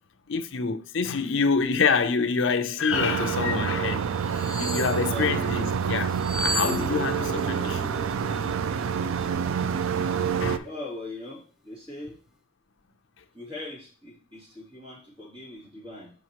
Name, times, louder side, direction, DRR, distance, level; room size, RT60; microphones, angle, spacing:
voice 1, 0.3-7.9 10.4-10.7, left 5 dB, 65° left, 0.6 m, -27 dB
sound 1, 2.9-10.6, right 7 dB, 75° right, 0.4 m, -27 dB
sound 2, 4.3-5.0 6.2-7.4 7.6-7.8, equal, 15° left, 1.0 m, -32 dB
Guitar, 6.6-9.9, left 2 dB, ahead, 0.4 m, -38 dB
voice 2, 10.6-12.2 13.3-16.1, left 2 dB, 25° right, 2.6 m, -40 dB
6.0 x 5.7 x 3.0 m
head